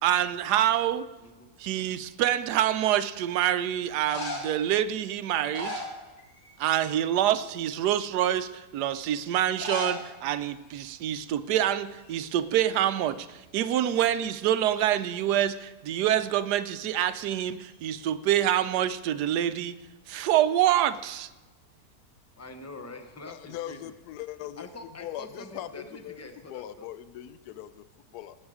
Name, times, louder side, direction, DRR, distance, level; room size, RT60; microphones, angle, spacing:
voice 1, 0.0-1.1 1.6-5.8 6.6-19.8 20.1-21.3, right 11 dB, 90° right, 13 dB, 1.2 m, -26 dB
voice 2, 1.2-1.5 22.4-23.9 24.6-26.9, left 2 dB, 15° left, 7 dB, 0.6 m, -45 dB
sound 1, 2.4-2.9 3.9-4.7 5.3-6.6 6.8-7.2 7.8-7.9 9.5-10.0 10.3-10.4 10.6-10.7 11.5-11.7 12.0-13.2 17.1-17.8, left 2 dB, 50° left, 2.3 m, -38 dB
voice 3, 23.3-24.7 25.0-26.2 26.5-28.4, left 12 dB, 80° left, 13 dB, 1.1 m, -40 dB
18.5 x 8.1 x 4.9 m, 1.1 s
omnidirectional pair, 1.7 m